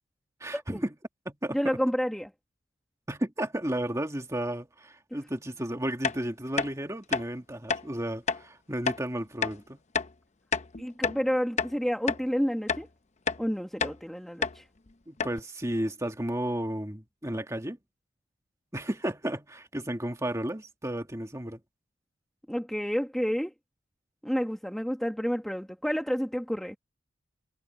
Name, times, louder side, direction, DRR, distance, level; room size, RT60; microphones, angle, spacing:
voice 1, 0.4-0.9 1.3-1.6 3.1-9.8 15.1-17.8 18.7-21.6, right 1 dB, 15° right, 1.9 m, -33 dB
voice 2, 1.5-2.3 10.8-12.9 13.4-14.6 22.5-23.5 24.2-26.8, equal, ahead, 1.2 m, -29 dB
sound 1, 6.0-6.2 6.6-6.7 7.1-7.3 7.7-7.8 8.3-8.4 8.9-9.0 9.4-9.6 9.9-10.1 10.5-11.2 11.6-11.7 12.1-12.2 12.7-12.9 13.3-13.4 13.8-14.0 14.4-14.6 14.9-15.0 15.2-15.4, left 5 dB, 35° left, 0.7 m, -29 dB
head